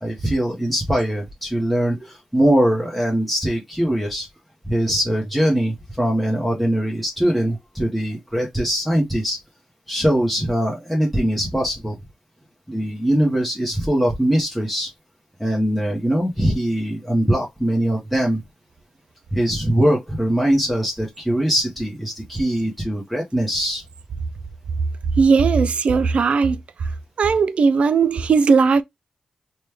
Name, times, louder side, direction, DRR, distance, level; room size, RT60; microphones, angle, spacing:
voice 1, 0.0-4.3 4.7-9.4 9.9-12.0 12.7-14.9 15.4-18.4 19.3-23.8, equal, ahead, 0.9 m, -21 dB
voice 2, 25.2-26.9 27.2-28.8, right 5 dB, 65° right, 0.4 m, -17 dB
3.1 x 2.2 x 3.3 m
cardioid pair, 75°, 2 cm